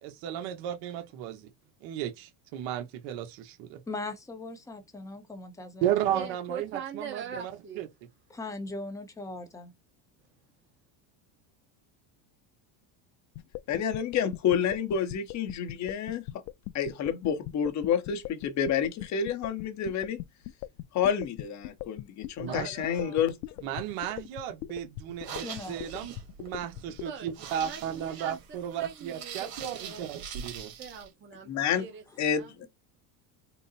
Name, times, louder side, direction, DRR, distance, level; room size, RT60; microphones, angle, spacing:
voice 1, 0.0-1.5 1.8-3.8 5.8-7.9 22.4-22.7 23.6-30.7, right 10 dB, 65° right, 1.0 m, -34 dB
voice 2, 3.9-6.3 8.3-9.7 25.4-25.8, left 2 dB, 5° left, 0.8 m, -39 dB
voice 3, 6.1-7.8 22.5-23.2 27.0-28.4 28.7-30.0 30.8-32.5, right 6 dB, 25° right, 0.9 m, -42 dB
sound 1, 13.4-27.1, left 15 dB, 80° left, 0.6 m, -39 dB
voice 4, 13.7-16.3 16.7-20.2 20.9-23.4 31.5-31.8 32.2-32.7, left 8 dB, 35° left, 0.8 m, -29 dB
sound 2, 25.1-31.1, right 7 dB, 45° right, 1.7 m, -43 dB
3.8 x 2.0 x 4.0 m
cardioid pair, 135°, 50 cm